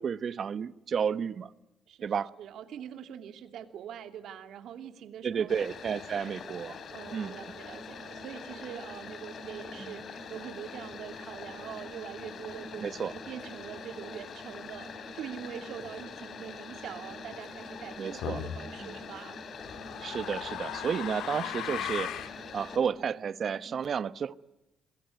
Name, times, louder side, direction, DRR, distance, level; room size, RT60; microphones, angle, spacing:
voice 1, 0.0-1.5 2.0-2.3 5.2-6.8 7.1-7.3 12.8-13.1 18.0-18.4 20.0-22.1 22.5-24.4, right 7 dB, 55° right, 1.1 m, -31 dB
voice 2, 1.9-5.6 5.9-6.0 6.9-19.4, right 9 dB, 75° right, 2.7 m, -44 dB
sound 1, 5.5-22.8, left 5 dB, 60° left, 4.0 m, -44 dB
sound 2, 7.0-23.8, right 4 dB, 30° right, 7.7 m, -52 dB
sound 3, 18.2-18.6 19.6-22.4, left 10 dB, 80° left, 2.3 m, -37 dB
28.5 x 22.0 x 9.4 m
cardioid pair, 80°, 0 cm